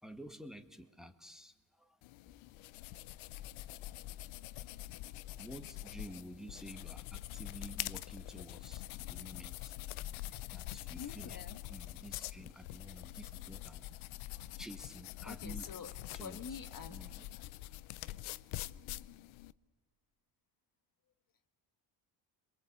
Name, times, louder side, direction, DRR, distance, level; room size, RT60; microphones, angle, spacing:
voice 1, 0.0-2.0 2.8-2.9 4.6-4.7 5.4-9.7 10.5-11.4 11.7-14.1 14.3-15.8 16.1-16.6 16.9-17.3, equal, ahead, 6 dB, 1.9 m, -51 dB
sound 1, 2.0-19.5, left 16 dB, 80° left, 0.7 m, -45 dB
voice 2, 11.0-11.6 14.2-14.6 15.2-15.9 16.2-17.0, left 6 dB, 45° left, 8 dB, 1.6 m, -47 dB
28.5 x 22.5 x 8.1 m, 1.3 s
supercardioid pair, 75°, 47 cm